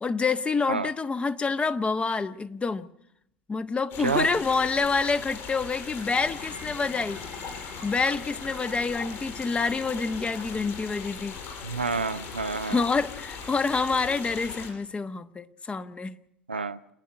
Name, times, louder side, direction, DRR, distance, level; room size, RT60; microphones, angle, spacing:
voice 1, 0.0-2.9 3.5-7.2 7.8-11.4 12.6-16.2, left 4 dB, 20° left, 1.2 m, -27 dB
sound 1, 3.9-14.7, left 6 dB, 60° left, 6.2 m, -39 dB
voice 2, 4.0-4.3 11.6-12.8 16.5-16.8, right 4 dB, 90° right, 0.8 m, -29 dB
sound 2, 5.9-13.4, left 2 dB, 85° left, 6.4 m, -51 dB
27.5 x 10.5 x 9.8 m
figure-of-eight pair, 70°, 5 cm